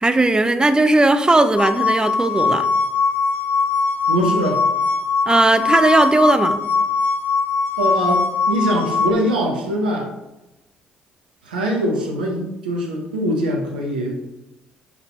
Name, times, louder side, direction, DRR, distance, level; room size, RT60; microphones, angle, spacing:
voice 1, 0.0-2.7 5.3-6.6, right 2 dB, 15° right, 10 dB, 0.6 m, -17 dB
sound 1, 1.6-9.1, left 4 dB, 45° left, 1.0 m, -21 dB
voice 2, 4.1-4.6 7.8-10.1 11.4-14.2, equal, 85° right, 0 dB, 0.9 m, -22 dB
6.7 x 4.8 x 3.1 m, 0.97 s
figure-of-eight pair, 50°, 5 cm